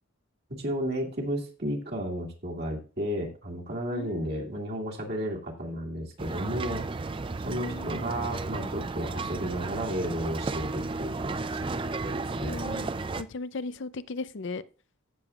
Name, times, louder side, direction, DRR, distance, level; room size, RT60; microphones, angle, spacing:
voice 1, 0.5-6.8 7.4-12.6, equal, 50° right, -1 dB, 2.1 m, -33 dB
voice 2, 3.9-4.5 7.5-8.1 12.4-12.9 13.2-14.6, left 3 dB, 60° left, 15 dB, 0.5 m, -37 dB
sound 1, 6.2-13.2, right 3 dB, 25° right, 0.4 m, -33 dB
15.0 x 6.8 x 2.4 m, 0.35 s
head